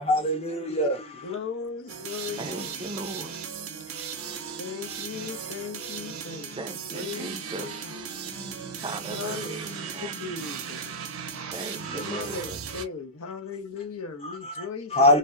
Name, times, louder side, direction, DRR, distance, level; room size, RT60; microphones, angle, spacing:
voice 1, 0.0-1.0 11.8-12.3 14.2-14.6 14.9-15.2, left 1 dB, 30° left, 0.6 m, -23 dB
voice 2, 1.2-3.0 4.6-6.7 6.9-7.9 9.1-9.6 9.9-11.0 11.9-15.2, left 5 dB, 75° left, 0.6 m, -37 dB
sound 1, 1.9-12.8, right 7 dB, 80° right, 0.5 m, -37 dB
voice 3, 2.4-3.4 6.6-8.1 8.8-10.3 11.5-12.6, right 3 dB, 20° right, 0.3 m, -38 dB
2.7 x 2.0 x 2.2 m
head